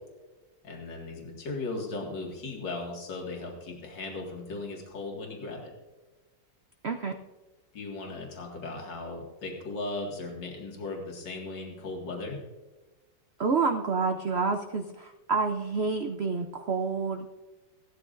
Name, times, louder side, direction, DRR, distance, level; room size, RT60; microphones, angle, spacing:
voice 1, 0.6-5.7 7.7-12.4, left 3 dB, 70° left, -1 dB, 2.7 m, -37 dB
voice 2, 13.4-17.3, right 4 dB, 70° right, 5 dB, 0.6 m, -28 dB
17.0 x 13.0 x 2.6 m, 1.2 s
omnidirectional pair, 2.0 m